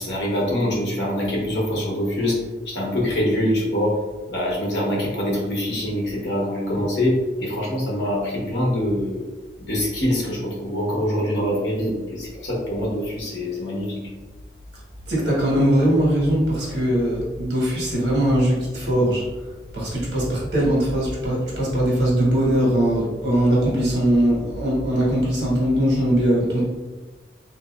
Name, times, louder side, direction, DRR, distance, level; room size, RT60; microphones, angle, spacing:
voice 1, 0.0-2.4 2.7-4.0 4.3-7.1 7.4-9.2 9.7-14.0, left 1 dB, 75° left, -3 dB, 1.0 m, -24 dB
voice 2, 15.1-19.2 19.7-26.6, right 1 dB, 70° right, -6 dB, 1.3 m, -20 dB
3.3 x 2.7 x 2.3 m, 1.2 s
head